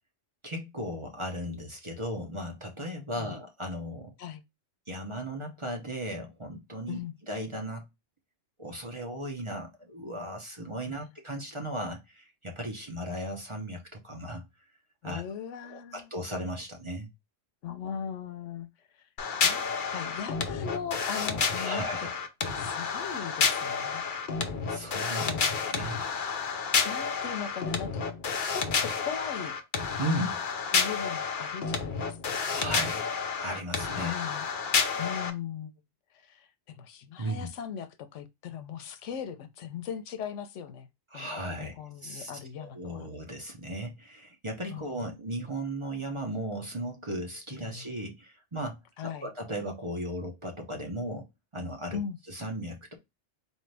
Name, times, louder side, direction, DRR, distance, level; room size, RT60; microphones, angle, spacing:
voice 1, 0.4-4.1 4.9-7.0 7.3-7.8 8.6-14.4 15.0-15.2 15.7-17.1 21.6-22.1 24.7-26.0 30.0-30.4 32.5-33.0 33.4-34.2 37.2-37.5 41.1-41.7 42.0-42.3 42.6-51.3 51.5-52.0 52.3-53.0, right 1 dB, 30° right, 0.8 m, -36 dB
voice 2, 15.0-16.1 17.6-18.7 19.4-22.1 22.4-24.0 25.2-25.7 26.8-28.0 28.5-28.6 29.0-29.5 30.7-32.8 33.9-34.5 35.0-35.7 36.2-40.9 41.1-43.1 44.7-45.1 47.5-47.8 49.0-49.3 51.9-52.2, left 8 dB, 85° left, 1.0 m, -39 dB
sound 1, 19.2-35.3, left 5 dB, 55° left, 0.7 m, -30 dB
4.3 x 2.7 x 3.3 m
omnidirectional pair, 1.2 m